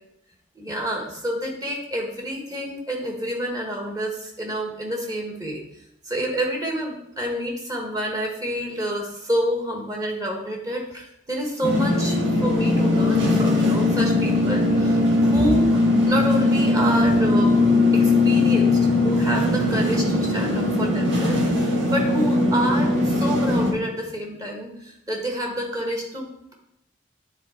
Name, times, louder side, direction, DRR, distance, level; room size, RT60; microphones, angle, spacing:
voice 1, 0.5-5.6 6.0-17.6 17.9-26.5, equal, 20° right, 0 dB, 1.3 m, -28 dB
sound 1, 11.6-23.7, left 2 dB, 80° right, 1.5 m, -20 dB
9.6 x 4.1 x 4.3 m, 0.80 s
head